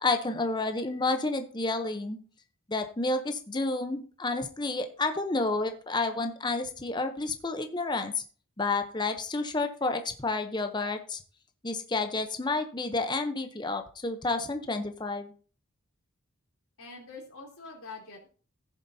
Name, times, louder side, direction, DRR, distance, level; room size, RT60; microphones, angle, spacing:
voice 1, 0.0-2.2 2.7-8.2 8.6-11.2 11.6-15.3, left 3 dB, 20° left, 7 dB, 0.7 m, -30 dB
voice 2, 16.8-18.3, left 3 dB, 80° left, -2 dB, 3.4 m, -45 dB
16.0 x 7.2 x 2.7 m, 0.40 s
head